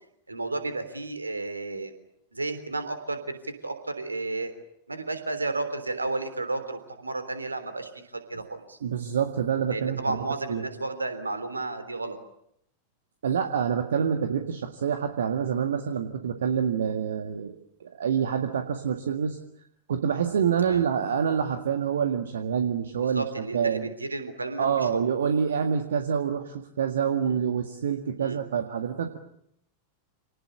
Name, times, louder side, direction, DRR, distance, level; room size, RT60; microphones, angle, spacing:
voice 1, 0.3-1.9 2.3-4.5 4.9-8.8 9.7-12.2 20.6-20.9 23.0-25.1 27.2-27.4 28.2-28.4, right 3 dB, 80° right, 10 dB, 3.4 m, -32 dB
voice 2, 8.8-10.2 10.5-10.6 13.2-19.4 19.9-23.9 24.6-29.2, right 7 dB, 65° right, 6 dB, 1.9 m, -27 dB
28.0 x 19.5 x 10.0 m, 0.75 s
figure-of-eight pair, 90°, 0 cm